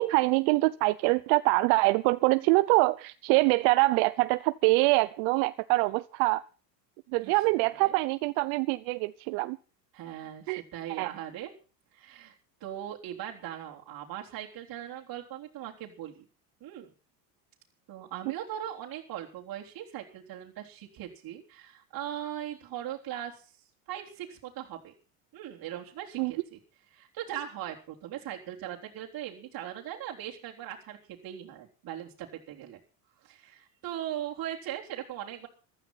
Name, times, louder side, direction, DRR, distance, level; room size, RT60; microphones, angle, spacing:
voice 1, 0.0-6.4 7.1-9.6 10.5-10.6 11.0-11.1 26.2-26.3, right 23 dB, 60° right, 15 dB, 0.8 m, -24 dB
voice 2, 7.2-8.0 9.9-11.5 11.9-12.3 12.6-16.3 16.6-16.9 17.9-23.5 23.9-24.9 25.3-26.6 26.9-32.8 33.2-35.5, right 11 dB, 45° right, -2 dB, 3.7 m, -39 dB
15.0 x 13.0 x 5.7 m, 0.37 s
hypercardioid pair, 90°, 49 cm